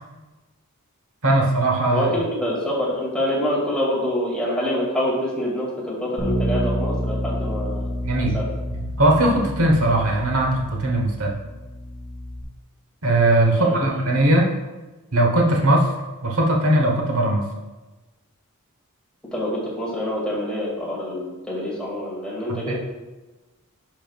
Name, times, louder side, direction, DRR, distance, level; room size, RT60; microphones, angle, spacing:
voice 1, 1.2-2.1 8.0-8.3 8.7-11.3 13.0-14.5 15.1-15.9 16.2-17.5 22.5-22.7, right 1 dB, 70° right, 0 dB, 1.1 m, -19 dB
voice 2, 1.9-7.9 8.3-8.4 13.5-13.8 14.2-14.3 19.3-22.7, left 1 dB, 5° left, -6 dB, 2.1 m, -26 dB
Bass guitar, 6.2-12.4, equal, 20° left, 1.5 m, -29 dB
10.5 x 5.5 x 2.4 m, 1.2 s
head